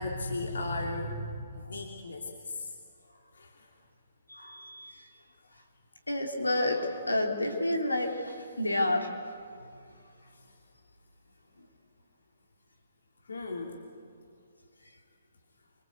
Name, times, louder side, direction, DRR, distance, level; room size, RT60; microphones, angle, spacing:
voice 1, 0.0-2.7 3.3-3.7 13.2-13.8, left 2 dB, 70° left, 1 dB, 2.9 m, -36 dB
voice 2, 4.3-5.1 6.1-9.1, left 1 dB, 85° left, 2 dB, 3.7 m, -30 dB
25.0 x 25.0 x 8.2 m, 2.3 s
figure-of-eight pair, 130°, 0 cm